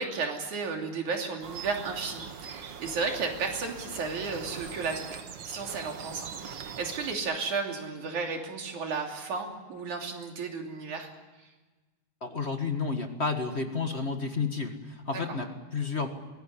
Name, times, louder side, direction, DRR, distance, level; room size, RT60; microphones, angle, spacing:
voice 1, 0.0-5.2 5.4-11.1, right 4 dB, 75° right, 2 dB, 4.4 m, -33 dB
sound 1, 1.4-7.2, right 7 dB, 50° right, 1.4 m, -42 dB
voice 2, 12.2-16.1, left 4 dB, 30° left, 5 dB, 1.2 m, -31 dB
23.0 x 17.5 x 9.9 m, 1.2 s
omnidirectional pair, 3.5 m